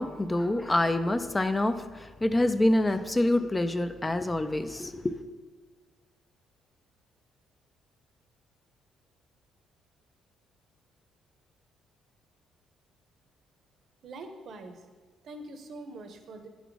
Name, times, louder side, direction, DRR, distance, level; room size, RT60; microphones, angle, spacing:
voice 1, 0.0-5.1, left 1 dB, 15° left, 10 dB, 0.4 m, -26 dB
voice 2, 14.0-14.9 15.2-16.5, right 2 dB, 60° right, 6 dB, 0.8 m, -43 dB
9.1 x 4.0 x 4.7 m, 1.4 s
cardioid pair, 95°, 0 cm